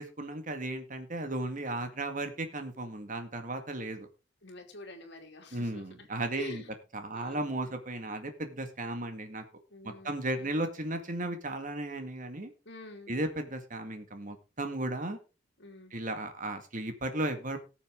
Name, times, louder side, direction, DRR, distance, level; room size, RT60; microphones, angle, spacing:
voice 1, 0.0-4.1 5.5-6.6 6.9-9.4 9.8-12.5 13.1-15.2 15.9-17.6, right 1 dB, 40° right, 7 dB, 2.0 m, -35 dB
voice 2, 4.4-6.1 6.4-6.7 7.1-7.8 9.7-10.5 12.6-13.1 15.6-15.9, left 2 dB, 60° left, 3 dB, 3.0 m, -47 dB
18.5 x 7.1 x 3.8 m, 0.31 s
head